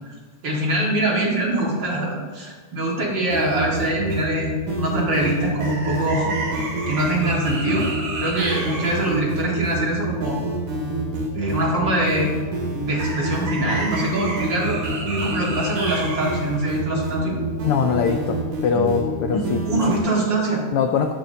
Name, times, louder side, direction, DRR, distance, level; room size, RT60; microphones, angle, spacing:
voice 1, 0.4-6.3 6.9-7.9 8.2-10.4 11.4-12.3 12.8-14.8 15.1-17.4 19.3-20.6, right 1 dB, 40° right, -3 dB, 2.4 m, -24 dB
sound 1, 3.3-20.0, right 1 dB, 65° right, 4.1 m, -26 dB
voice 2, 17.6-19.6 20.7-21.1, left 6 dB, 85° left, 4 dB, 1.2 m, -22 dB
12.5 x 11.5 x 2.9 m, 1.4 s
omnidirectional pair, 3.4 m